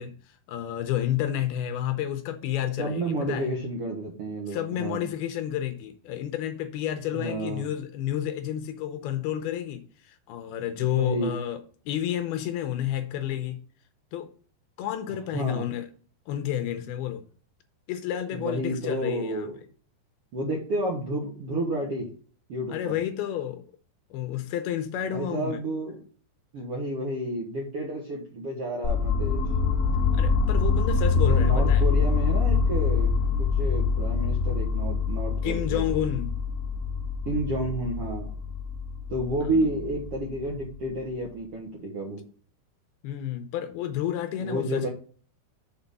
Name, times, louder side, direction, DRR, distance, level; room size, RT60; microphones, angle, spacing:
voice 1, 0.0-3.5 4.5-13.6 14.1-14.3 14.8-15.9 16.3-17.2 17.9-19.5 22.7-23.6 24.1-25.6 30.1-31.8 35.4-36.3 43.0-44.9, left 11 dB, 80° left, 2.5 m, -30 dB
voice 2, 2.8-5.1 7.1-7.7 10.8-11.3 15.3-15.6 18.3-19.6 20.3-22.1 22.5-22.9 25.1-26.0 26.5-29.4 31.1-33.1 33.4-36.0 37.2-38.3 39.1-42.2 44.4-44.9, right 1 dB, 65° right, 1.4 m, -30 dB
sound 1, 28.8-40.8, left 5 dB, 65° left, 0.7 m, -25 dB
7.1 x 4.8 x 5.3 m
omnidirectional pair, 4.7 m